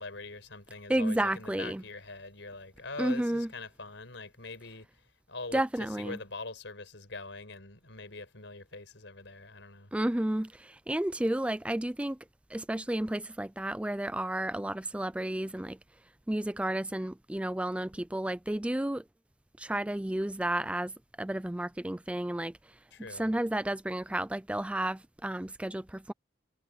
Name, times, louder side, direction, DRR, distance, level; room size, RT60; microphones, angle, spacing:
voice 1, 0.0-9.9 22.9-23.4, left 3 dB, 75° left, 5.2 m, -43 dB
voice 2, 0.9-1.8 3.0-3.5 5.5-6.2 9.9-12.2 12.5-15.8 16.3-19.0 19.6-20.9 21.2-22.8 23.1-26.1, right 1 dB, 5° right, 0.3 m, -32 dB
head